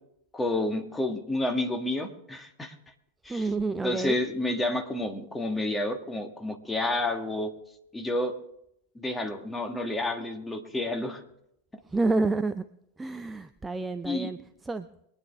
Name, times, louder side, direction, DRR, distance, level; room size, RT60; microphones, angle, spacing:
voice 1, 0.3-2.7 3.2-3.5 3.8-7.5 7.9-8.3 8.9-11.2 14.0-14.3, left 2 dB, 10° left, 5 dB, 1.7 m, -30 dB
voice 2, 3.3-4.2 11.9-12.6 13.0-14.4 14.7-14.9, right 3 dB, 10° right, 10 dB, 0.5 m, -28 dB
23.5 x 10.0 x 3.7 m, 0.78 s
figure-of-eight pair, 90°, 0 cm